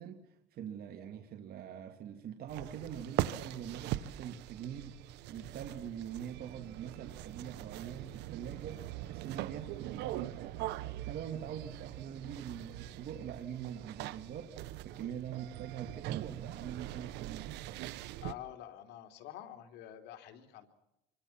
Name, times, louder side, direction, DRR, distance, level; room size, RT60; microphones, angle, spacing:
voice 1, 0.0-17.5, right 9 dB, 65° right, 5 dB, 2.4 m, -44 dB
sound 1, 2.5-18.3, right 14 dB, 90° right, 1.0 m, -42 dB
voice 2, 18.2-20.7, left 11 dB, 90° left, 6 dB, 3.4 m, -47 dB
27.5 x 24.0 x 5.9 m, 0.85 s
cardioid pair, 110°, 17 cm